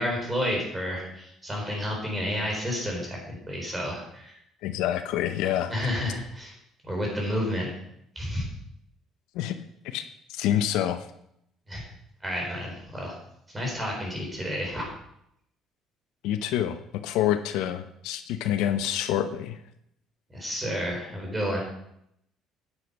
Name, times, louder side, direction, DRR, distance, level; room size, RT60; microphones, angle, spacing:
voice 1, 0.0-4.4 5.7-6.5 6.8-7.7 8.2-8.5 11.7-11.8 12.2-13.2 13.5-14.9 20.3-21.6, equal, 15° right, 0 dB, 4.2 m, -30 dB
voice 2, 4.6-5.7 9.3-9.6 9.8-11.1 16.2-19.6, left 11 dB, 85° left, 10 dB, 0.7 m, -27 dB
9.8 x 7.9 x 5.5 m, 0.75 s
cardioid pair, 130°, 0 cm